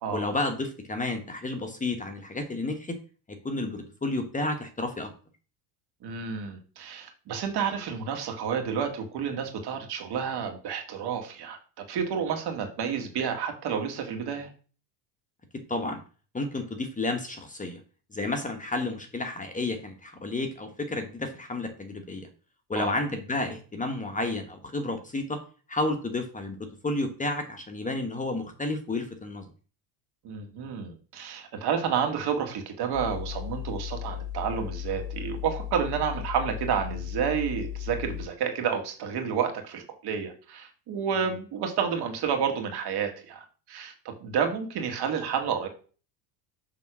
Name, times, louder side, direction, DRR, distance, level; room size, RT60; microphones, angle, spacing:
voice 1, 0.1-3.0 3.3-5.1 15.7-16.0 16.3-17.8 18.1-22.3 22.7-25.4 25.7-26.6 26.8-29.4, left 2 dB, 15° left, 5 dB, 1.2 m, -31 dB
voice 2, 6.0-14.5 22.7-22.9 30.2-45.7, right 7 dB, 55° right, 4 dB, 2.0 m, -30 dB
sound 1, 32.9-38.3, left 11 dB, 40° left, 0.9 m, -36 dB
6.9 x 3.5 x 6.1 m, 0.38 s
supercardioid pair, 105°, 48 cm